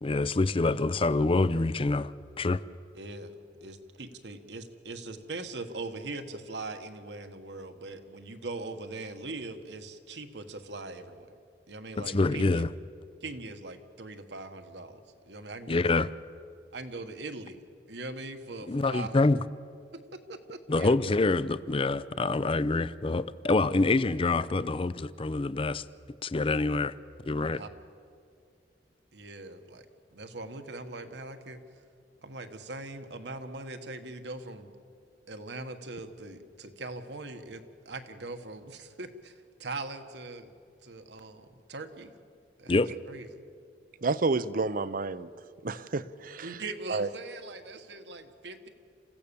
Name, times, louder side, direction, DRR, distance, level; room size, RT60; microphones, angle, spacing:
voice 1, 0.0-2.1 2.4-2.6 12.0-12.7 15.7-16.1 18.7-19.4 20.7-25.8 26.2-26.9 27.2-27.6 42.7-42.9, left 3 dB, 30° left, 16 dB, 0.5 m, -26 dB
voice 2, 2.9-3.3 3.6-11.3 11.7-12.6 13.2-15.9 16.7-17.6 17.9-19.2 19.9-20.9 27.6-27.7 29.1-29.9 30.1-31.6 32.2-34.7 35.3-39.3 39.6-40.5 40.8-42.1 42.6-43.4 46.4-48.7, right 2 dB, 70° right, 7 dB, 1.5 m, -41 dB
voice 3, 44.0-45.3 45.6-46.6 46.9-47.1, right 3 dB, 50° right, 15 dB, 0.6 m, -30 dB
27.5 x 15.5 x 7.0 m, 2.3 s
head